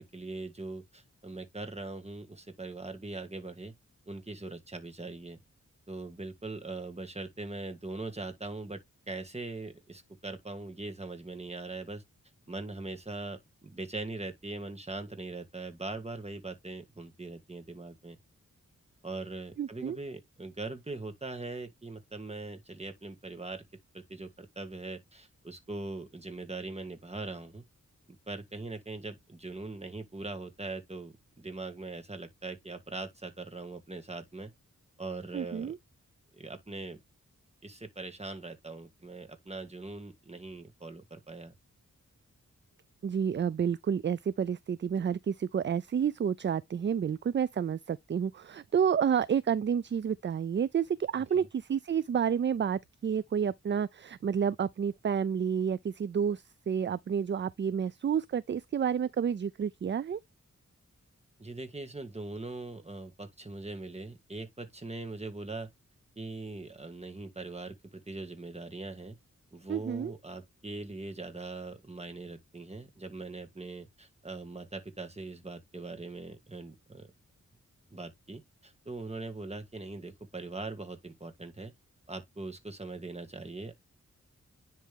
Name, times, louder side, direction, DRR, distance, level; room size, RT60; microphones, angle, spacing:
voice 1, 0.0-3.7 4.1-5.4 5.9-8.8 9.1-12.0 12.5-18.2 19.0-23.6 23.9-27.6 28.3-34.5 35.0-35.7 36.3-37.0 37.6-41.5 51.3-51.4 61.4-65.7 66.2-69.2 69.5-77.1 77.9-81.7 82.1-83.7, right 2 dB, 20° right, 1.8 m, -41 dB
voice 2, 19.6-20.0 35.3-35.8 43.0-60.2 69.7-70.1, right 7 dB, 40° right, 0.4 m, -30 dB
10.0 x 3.4 x 3.5 m
wide cardioid pair, 70°, 31 cm